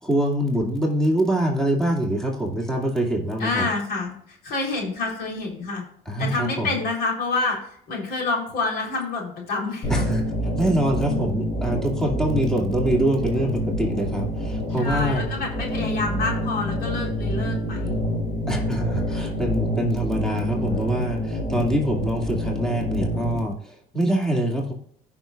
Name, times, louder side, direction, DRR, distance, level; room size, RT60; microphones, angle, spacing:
voice 1, 0.0-3.7 6.1-6.8 9.9-10.2 10.5-15.2 18.5-24.7, right 1 dB, 5° left, -2 dB, 2.2 m, -24 dB
voice 2, 3.4-5.8 6.2-10.1 14.8-18.0, left 3 dB, 70° left, 0 dB, 3.6 m, -28 dB
sound 1, 9.8-23.4, equal, 45° left, 3.9 m, -27 dB
15.5 x 5.8 x 2.4 m, 0.65 s
cardioid pair, 110°, 17 cm